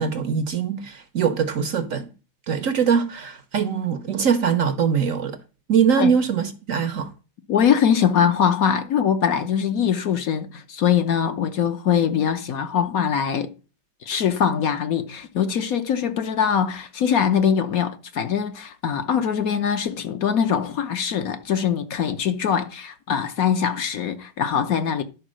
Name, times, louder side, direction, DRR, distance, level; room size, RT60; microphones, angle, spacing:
voice 1, 0.0-2.1 2.5-5.4 5.7-7.1, right 7 dB, 60° right, 1.0 m, -22 dB
voice 2, 7.5-13.5 14.0-25.0, left 8 dB, 60° left, 1.1 m, -22 dB
11.0 x 4.6 x 6.2 m
omnidirectional pair, 1.9 m